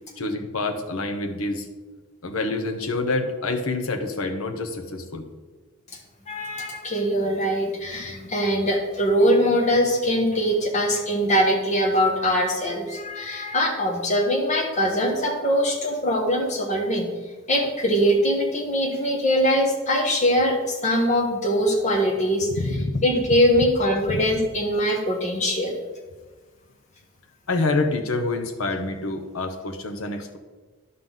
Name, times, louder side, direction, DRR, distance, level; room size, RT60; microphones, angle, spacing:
voice 1, 0.2-1.7 2.2-5.3 22.6-23.0 24.1-24.2 27.5-30.4, left 2 dB, 75° left, 5 dB, 0.9 m, -27 dB
voice 2, 6.3-17.1 17.5-22.5 23.0-25.8, equal, 35° left, 1 dB, 1.3 m, -22 dB
10.5 x 5.7 x 3.9 m, 1.3 s
head